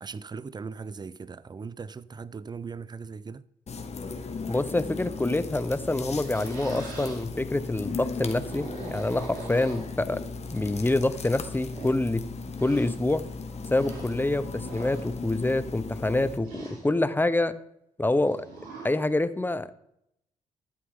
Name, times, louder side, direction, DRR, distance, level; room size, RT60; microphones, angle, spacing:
voice 1, 0.0-3.4, right 5 dB, 30° right, 0.5 m, -39 dB
sound 1, 3.7-16.4, left 4 dB, 50° left, 1.4 m, -37 dB
voice 2, 4.5-10.2 10.5-12.2 12.6-13.2 13.7-17.5 18.0-18.4 18.8-19.7, left 2 dB, 15° left, 0.7 m, -26 dB
sound 2, 6.0-7.2 8.2-10.2 11.0-11.1 11.5-12.0 12.5-13.0 13.7-14.2 14.5-15.0 16.4-16.9 18.2-18.9, right 3 dB, 80° right, 3.1 m, -42 dB
12.5 x 7.6 x 3.6 m
supercardioid pair, 50°, 15 cm